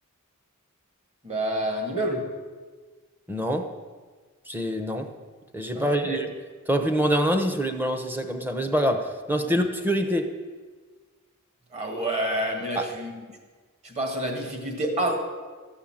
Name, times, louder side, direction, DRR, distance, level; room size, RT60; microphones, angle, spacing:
voice 1, 1.2-2.2 5.7-6.2 9.4-9.5 11.7-13.2 13.8-15.2, right 1 dB, 30° right, 3 dB, 2.0 m, -28 dB
voice 2, 3.3-3.7 4.5-5.1 5.5-6.3 6.7-10.3 12.8-12.9, equal, 10° right, 7 dB, 0.9 m, -25 dB
14.0 x 5.7 x 8.9 m, 1.4 s
head